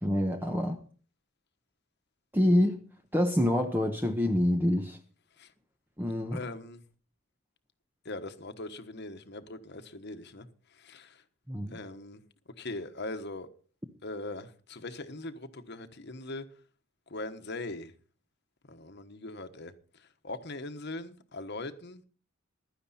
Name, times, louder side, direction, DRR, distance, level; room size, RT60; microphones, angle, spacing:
voice 1, 0.0-0.8 2.3-2.8 3.1-5.0 6.0-6.4 11.5-11.8, left 1 dB, 10° right, 0.9 m, -26 dB
voice 2, 6.3-6.8 8.0-10.5 10.8-11.2 11.7-12.2 12.6-13.5 14.0-16.5 17.1-17.9 18.7-19.7 20.0-22.0, left 2 dB, 55° left, 1.3 m, -40 dB
15.5 x 12.0 x 4.3 m
head